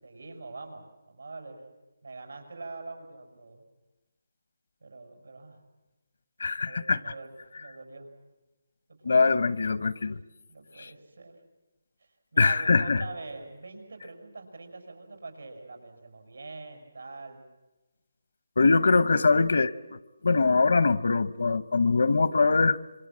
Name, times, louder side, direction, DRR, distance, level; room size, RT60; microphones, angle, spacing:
voice 1, 0.0-1.7 2.0-3.6 4.8-5.6 6.6-7.3 7.6-8.1 8.9-9.2 10.5-11.4 12.0-17.4, right 3 dB, 90° right, 6.2 m, -44 dB
voice 2, 6.4-7.0 9.0-10.2 10.8-10.9 12.4-13.0 18.6-22.8, left 4 dB, 70° left, 0.9 m, -23 dB
26.5 x 24.0 x 7.5 m
hypercardioid pair, 165°, 0 cm